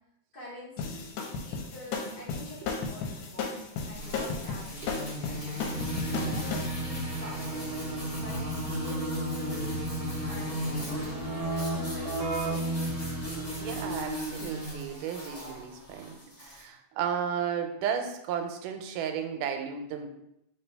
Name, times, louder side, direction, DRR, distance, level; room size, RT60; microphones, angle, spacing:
voice 1, 0.3-1.0 1.4-5.9 6.3-7.7 8.1-12.2, left 1 dB, 55° left, -8 dB, 1.0 m, -47 dB
sound 1, 0.8-6.7, left 4 dB, 90° left, 2.2 m, -34 dB
sound 2, 3.9-16.6, right 1 dB, 30° left, 0.6 m, -36 dB
Keyboard (musical), 5.7-14.1, right 1 dB, 65° right, 1.0 m, -35 dB
voice 2, 13.6-20.1, right 8 dB, 90° right, 6 dB, 2.1 m, -34 dB
4.4 x 3.4 x 3.3 m, 0.80 s
omnidirectional pair, 3.7 m